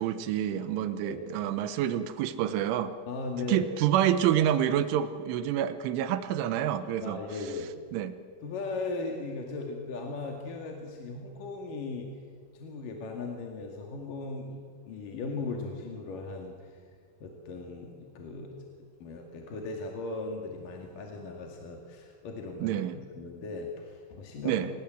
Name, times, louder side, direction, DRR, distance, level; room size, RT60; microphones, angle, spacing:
voice 1, 0.0-2.9 3.5-7.2 7.9-8.1 22.6-23.0 24.5-24.7, right 10 dB, 90° right, 11 dB, 3.5 m, -28 dB
voice 2, 3.1-3.7 7.0-7.7 8.4-12.1 12.5-14.6 14.9-16.8 17.2-18.6 19.0-22.8 23.1-24.7, left 3 dB, 55° left, 1 dB, 3.3 m, -38 dB
26.5 x 20.5 x 7.8 m, 2.1 s
omnidirectional pair, 5.4 m